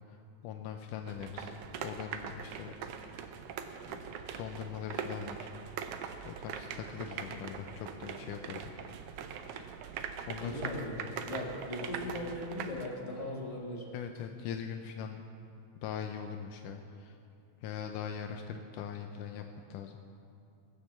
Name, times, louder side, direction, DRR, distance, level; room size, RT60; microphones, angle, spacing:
voice 1, 0.1-1.5 1.8-2.7 3.2-3.4 3.9-4.0 4.4-5.5 6.2-8.6 9.6-9.7 10.3-10.8 13.9-15.2 15.8-17.2 17.6-19.5 19.7-20.0, left 8 dB, 85° left, 5 dB, 2.2 m, -41 dB
sound 1, 1.1-12.9, right 7 dB, 90° right, 1.3 m, -42 dB
voice 2, 10.4-11.0 11.3-13.9, left 1 dB, 15° left, -3 dB, 1.4 m, -38 dB
19.0 x 6.5 x 7.6 m, 2.7 s
omnidirectional pair, 3.6 m